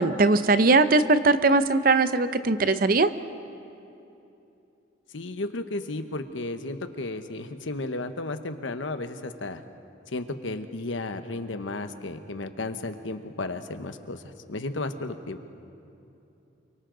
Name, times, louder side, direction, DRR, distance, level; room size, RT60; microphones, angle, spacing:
voice 1, 0.0-3.1, right 3 dB, 50° right, 12 dB, 0.7 m, -20 dB
voice 2, 5.1-9.6 10.1-14.2 14.5-15.4, left 2 dB, 85° left, 9 dB, 1.1 m, -33 dB
28.5 x 24.0 x 3.9 m, 2.8 s
head